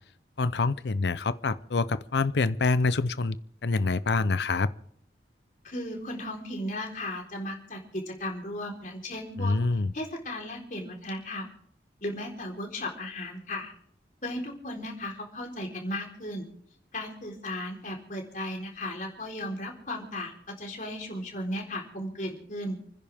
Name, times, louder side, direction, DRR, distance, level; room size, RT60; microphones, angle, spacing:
voice 1, 0.4-3.4 3.6-4.7 9.4-9.9, left 3 dB, 75° left, 15 dB, 0.6 m, -26 dB
voice 2, 5.6-9.6 9.9-11.5 12.0-13.7 14.2-16.5 16.9-22.8, left 1 dB, 45° left, 0 dB, 4.1 m, -36 dB
30.0 x 10.5 x 3.5 m, 0.64 s
head